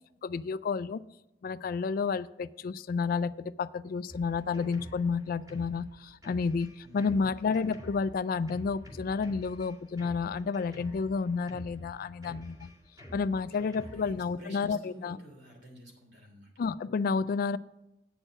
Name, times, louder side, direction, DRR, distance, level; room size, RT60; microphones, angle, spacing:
voice 1, 0.2-1.0 1.4-12.7 13.1-15.2 16.6-17.6, left 5 dB, 55° left, 17 dB, 0.3 m, -31 dB
Drum kit, 4.1-14.2, equal, 20° right, 2.3 m, -48 dB
voice 2, 6.8-7.5 13.5-16.5, equal, 65° right, 1 dB, 3.0 m, -50 dB
8.9 x 6.4 x 6.2 m, 0.91 s
head